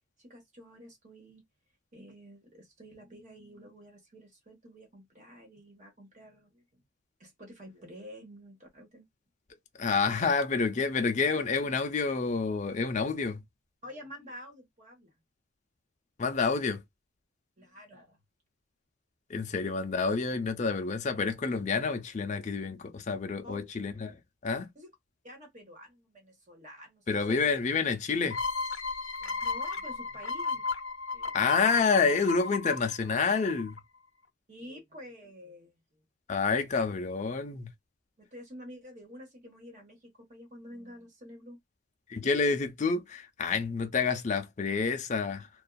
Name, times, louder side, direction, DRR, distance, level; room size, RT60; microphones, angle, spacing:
voice 1, 0.2-1.4 1.9-6.8 7.2-9.1 10.2-10.3 13.8-15.1 17.6-18.2 23.4-23.6 24.7-24.9 25.2-27.4 29.2-30.6 31.1-31.3 31.7-31.8 34.5-35.8 38.2-41.6, equal, 35° right, 1.0 m, -49 dB
voice 2, 9.8-13.4 16.2-16.8 19.3-24.7 27.1-28.4 31.3-33.8 36.3-37.7 42.1-45.5, left 4 dB, 35° left, 0.4 m, -28 dB
sound 1, 28.3-33.8, left 4 dB, 80° left, 0.6 m, -34 dB
2.5 x 2.4 x 2.2 m
head